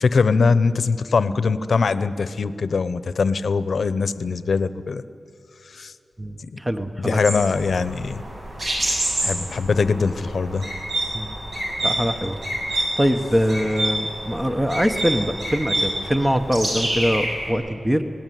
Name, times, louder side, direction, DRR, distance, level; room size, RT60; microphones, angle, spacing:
voice 1, 0.0-5.0 5.7-5.9 6.4-6.6 7.0-8.2 9.2-10.7, left 4 dB, 70° left, 14 dB, 0.9 m, -22 dB
voice 2, 6.2-7.4 11.1-11.4 11.8-12.4 12.7-18.0, equal, 10° right, 8 dB, 1.0 m, -23 dB
sound 1, 7.2-17.5, right 1 dB, 65° right, 7.9 m, -28 dB
26.0 x 18.5 x 9.3 m, 2.7 s
wide cardioid pair, 135°, 0 cm